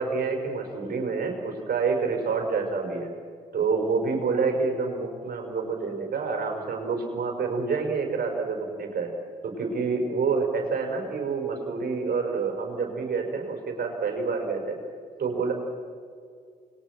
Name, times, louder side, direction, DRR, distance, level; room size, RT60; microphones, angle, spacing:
voice 1, 0.0-3.1 3.5-9.1 9.4-14.8 15.2-15.5, right 4 dB, 45° right, 3 dB, 5.7 m, -28 dB
29.0 x 21.5 x 6.2 m, 2.2 s
figure-of-eight pair, 45°, 21 cm